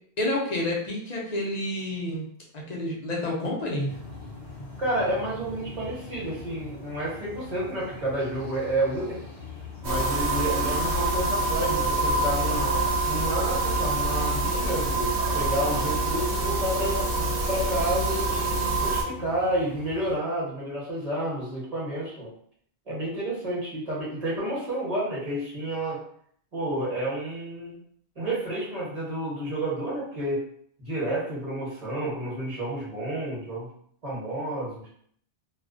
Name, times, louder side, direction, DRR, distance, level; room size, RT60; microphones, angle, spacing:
voice 1, 0.2-2.3 2.5-3.9, left 1 dB, 45° left, -2 dB, 0.6 m, -29 dB
sound 1, 3.9-20.2, left 4 dB, 65° left, 1.1 m, -43 dB
voice 2, 4.8-9.2 9.8-12.7 13.0-17.1 17.5-22.3 22.9-26.0 26.5-27.8 28.1-30.4 30.8-33.7 34.0-34.8, right 1 dB, 35° right, -6 dB, 1.0 m, -30 dB
sound 2, 9.8-19.0, right 2 dB, 75° right, 0.9 m, -26 dB
2.4 x 2.1 x 2.4 m, 0.64 s
omnidirectional pair, 1.1 m